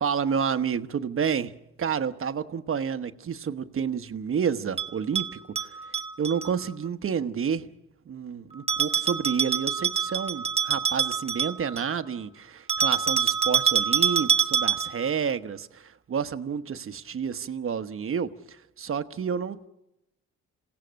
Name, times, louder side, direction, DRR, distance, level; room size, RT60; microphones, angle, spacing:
voice 1, 0.0-5.8 6.2-7.7 8.0-19.7, right 7 dB, 45° right, 1.1 m, -30 dB
Bell, 4.8-6.5 8.7-11.9 12.7-15.1, right 7 dB, 20° right, 1.2 m, -26 dB
27.5 x 17.0 x 6.4 m
cardioid pair, 90°, 30 cm